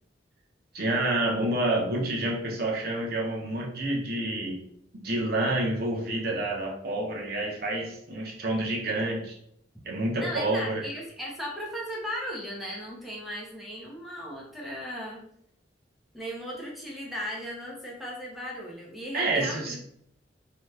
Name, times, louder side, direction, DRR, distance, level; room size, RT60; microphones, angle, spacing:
voice 1, 0.7-4.6 5.0-9.3 9.9-10.8 19.1-19.8, right 2 dB, 60° right, -1 dB, 0.8 m, -28 dB
voice 2, 10.2-15.2 16.1-19.8, equal, ahead, -4 dB, 0.7 m, -36 dB
2.9 x 2.3 x 3.2 m, 0.71 s
head